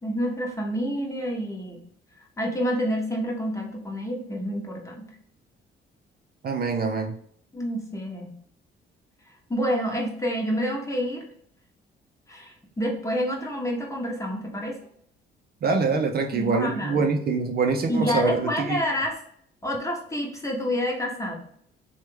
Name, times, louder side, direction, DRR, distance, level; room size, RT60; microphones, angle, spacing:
voice 1, 0.0-1.8 2.4-5.1 7.5-8.3 9.5-11.2 12.3-14.8 16.3-17.0 17.9-19.2 19.6-21.4, equal, 15° left, 0 dB, 0.9 m, -28 dB
voice 2, 6.4-7.1 15.6-18.8, right 4 dB, 50° right, 4 dB, 0.5 m, -24 dB
3.1 x 2.3 x 3.1 m, 0.65 s
cardioid pair, 90°, 20 cm